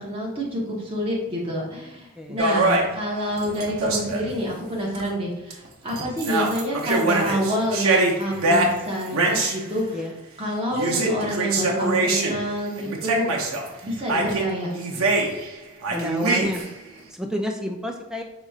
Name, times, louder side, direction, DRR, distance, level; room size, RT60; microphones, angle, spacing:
voice 1, 0.0-9.8 10.4-13.4 13.8-14.7, equal, 25° right, -4 dB, 1.1 m, -28 dB
voice 2, 2.2-2.5 9.9-10.1 15.9-16.6 17.1-18.2, left 1 dB, 5° right, 2 dB, 0.4 m, -30 dB
sound 1, 2.4-4.3 5.0-5.1 5.5-5.7 5.9-9.6 10.7-12.4 12.8-13.7 14.1-15.5 15.8-16.8, right 2 dB, 80° right, 0.8 m, -24 dB
5.0 x 4.1 x 2.4 m, 0.89 s
head